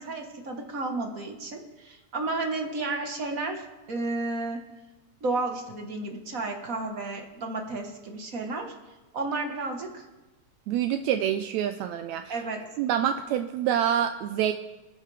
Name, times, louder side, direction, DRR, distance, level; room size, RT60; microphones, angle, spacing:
voice 1, 0.0-4.6 5.2-8.7 9.1-10.0 12.3-12.7, right 3 dB, 40° right, 3 dB, 1.2 m, -32 dB
voice 2, 10.7-12.3 12.8-14.5, right 10 dB, 80° right, 8 dB, 1.8 m, -26 dB
25.5 x 9.9 x 3.4 m, 1.1 s
omnidirectional pair, 3.4 m